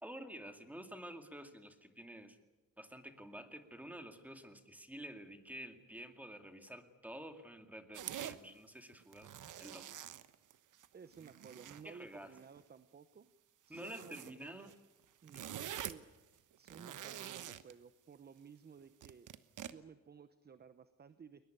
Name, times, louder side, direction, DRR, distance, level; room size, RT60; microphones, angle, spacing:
voice 1, 0.0-2.4 2.8-9.3 9.6-9.9 11.8-12.3 13.7-14.7, right 1 dB, 5° right, 7 dB, 2.2 m, -50 dB
sound 1, 7.9-8.4 9.0-10.9 11.1-11.8 12.4-12.6 13.7-14.3 14.7-14.8 15.0-16.0 16.5-17.7 19.0-19.7, right 11 dB, 65° right, 1.1 m, -46 dB
voice 2, 10.9-13.3 13.7-14.8 15.2-19.3 19.7-21.4, right 6 dB, 30° right, 13 dB, 0.8 m, -56 dB
21.5 x 20.5 x 9.1 m, 1.1 s
cardioid pair, 140°, 32 cm